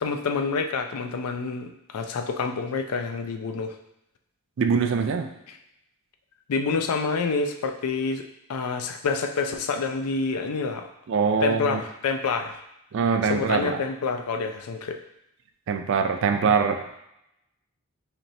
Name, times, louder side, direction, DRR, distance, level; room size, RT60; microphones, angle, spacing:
voice 1, 0.0-3.7 6.5-8.2 8.5-10.9 11.4-12.6 13.3-15.0, left 4 dB, 80° left, 6 dB, 0.4 m, -27 dB
voice 2, 4.6-5.3 11.1-11.8 12.9-13.8 15.7-17.0, right 5 dB, 60° right, 7 dB, 0.3 m, -23 dB
4.3 x 3.0 x 2.7 m, 0.82 s
head